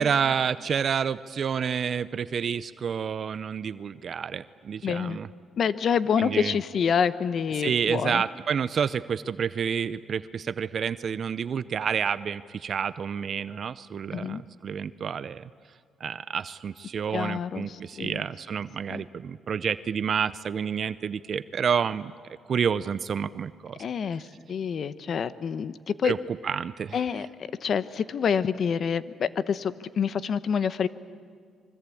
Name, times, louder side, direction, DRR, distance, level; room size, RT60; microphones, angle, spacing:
voice 1, 0.0-5.3 6.2-6.6 7.6-15.4 16.0-23.8 26.0-26.2 26.4-27.0, right 7 dB, 50° right, 15 dB, 0.6 m, -29 dB
voice 2, 4.8-5.2 5.6-8.2 14.1-14.4 17.1-18.2 18.9-19.0 23.8-26.1 26.9-27.3 27.6-30.9, left 7 dB, 55° left, 14 dB, 1.0 m, -27 dB
25.5 x 23.5 x 8.5 m, 2.1 s
cardioid pair, 90°, 0 cm